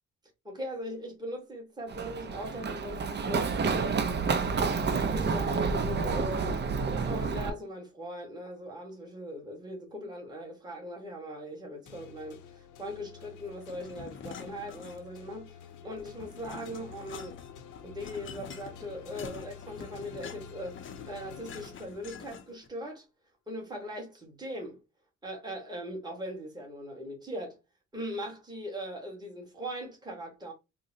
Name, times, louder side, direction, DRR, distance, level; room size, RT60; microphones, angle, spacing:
voice 1, 0.4-4.2 4.7-6.5 6.9-17.4 17.8-23.1 23.5-24.8 25.2-27.6 27.9-30.5, equal, 15° right, 1.4 m, -40 dB
Run, 1.9-7.5, right 5 dB, 35° right, 0.5 m, -29 dB
sound 1, 11.9-22.5, left 7 dB, 85° left, 0.7 m, -49 dB
sound 2, 13.6-15.3 15.6-22.7, left 6 dB, 40° left, 0.6 m, -46 dB
3.7 x 2.1 x 2.7 m
cardioid pair, 90°, 30 cm